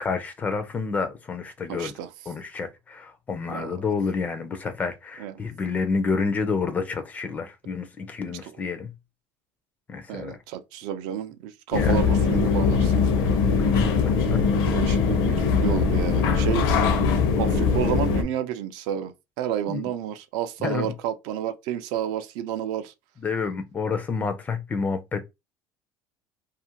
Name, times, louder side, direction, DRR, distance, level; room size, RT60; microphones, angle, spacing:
voice 1, 0.0-1.9 2.3-8.9 9.9-10.4 11.8-12.1 13.8-14.4 19.7-19.9 20.6-20.9 23.2-25.3, left 4 dB, 20° left, 0.4 m, -29 dB
voice 2, 1.7-2.1 3.5-3.7 5.2-5.3 8.4-8.5 10.1-12.9 14.7-17.0 17.4-22.9, right 10 dB, 70° right, 0.5 m, -31 dB
sound 1, 11.7-18.2, left 5 dB, 65° left, 0.6 m, -21 dB
2.4 x 2.4 x 2.8 m
cardioid pair, 155°, 8 cm